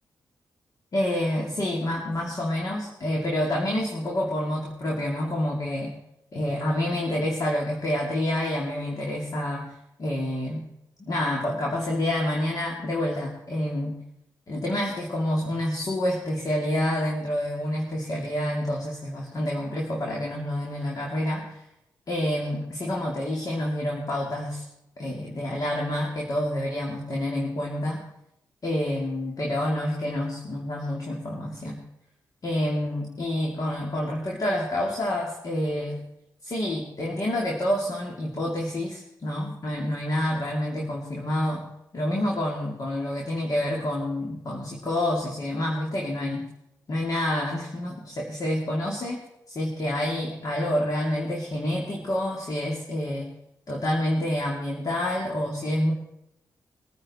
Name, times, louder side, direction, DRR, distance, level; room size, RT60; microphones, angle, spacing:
voice 1, 0.9-5.9 6.3-9.7 10.0-10.6 11.0-14.0 14.5-21.7 22.1-24.6 25.0-28.0 28.6-31.8 32.4-36.0 36.4-41.6 41.9-46.5 46.9-49.2 49.5-53.3 53.7-55.9, left 1 dB, 55° left, -1 dB, 2.5 m, -28 dB
21.5 x 9.3 x 4.2 m, 0.84 s
cardioid pair, 65°, 7 cm